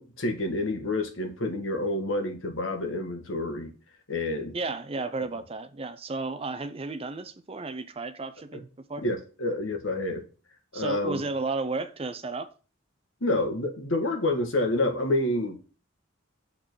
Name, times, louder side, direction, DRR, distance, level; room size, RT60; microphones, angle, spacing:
voice 1, 0.0-3.7 4.1-4.6 9.0-10.2 10.7-11.2 13.2-15.6, left 1 dB, 75° left, 1.4 m, -28 dB
voice 2, 4.5-8.6 8.9-9.0 10.7-12.5, right 3 dB, 30° right, 0.5 m, -33 dB
7.1 x 3.8 x 6.1 m
head